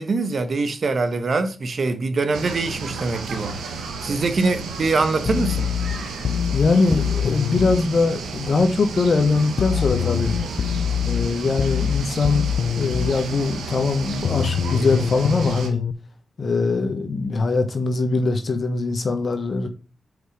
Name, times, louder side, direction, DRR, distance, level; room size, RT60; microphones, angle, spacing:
voice 1, 0.0-5.7, right 3 dB, 60° right, 1.0 m, -24 dB
sound 1, 2.3-15.7, right 4 dB, 85° right, 1.0 m, -32 dB
sound 2, 5.2-7.8 9.6-13.2 14.2-15.9, left 8 dB, 80° left, 0.5 m, -24 dB
voice 2, 6.5-10.4 11.0-12.5 12.8-15.8 16.4-19.7, left 3 dB, 55° left, 1.1 m, -22 dB
5.0 x 4.8 x 5.1 m
supercardioid pair, 45°, 0 cm